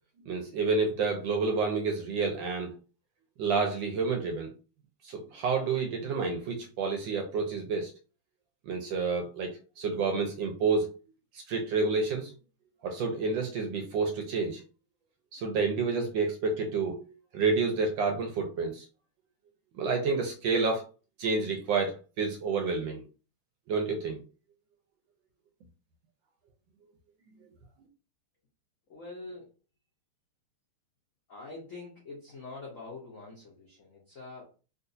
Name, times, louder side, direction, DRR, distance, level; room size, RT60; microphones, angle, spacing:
voice 1, 0.3-2.7 3.4-4.5 5.0-7.9 8.7-10.9 11.5-12.3 12.8-14.6 15.3-18.8 19.8-20.8 21.2-23.0 23.7-24.2, right 4 dB, 75° right, 2 dB, 1.2 m, -29 dB
voice 2, 28.9-29.5 31.3-34.5, left 3 dB, 70° left, -3 dB, 0.7 m, -45 dB
3.8 x 2.4 x 2.6 m, 0.34 s
omnidirectional pair, 2.4 m